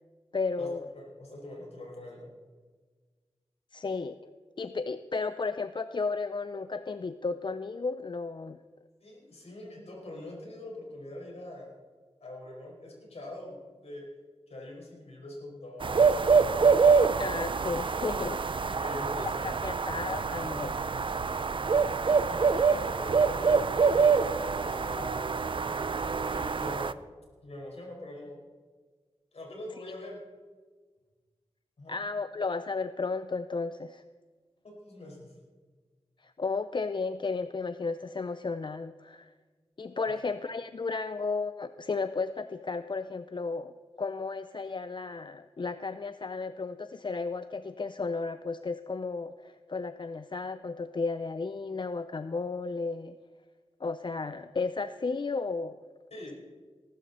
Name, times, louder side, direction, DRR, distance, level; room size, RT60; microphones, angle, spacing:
voice 1, 0.3-0.8 3.7-4.3 4.6-8.6 17.2-18.4 19.2-20.9 26.3-26.4 31.9-34.0 36.2-39.3 39.8-53.2 53.8-55.8, left 4 dB, 45° left, 12 dB, 0.5 m, -34 dB
voice 2, 0.9-2.3 9.0-11.7 12.2-14.1 14.5-16.7 18.6-19.7 22.3-25.5 26.1-27.0 27.4-28.4 29.3-30.2 31.8-32.0 34.6-35.4 56.1-56.3, left 1 dB, 70° left, -2 dB, 5.3 m, -43 dB
sound 1, 15.8-26.9, right 5 dB, 50° right, 0.5 m, -26 dB
19.0 x 12.0 x 4.3 m, 1.4 s
wide cardioid pair, 65°, 11 cm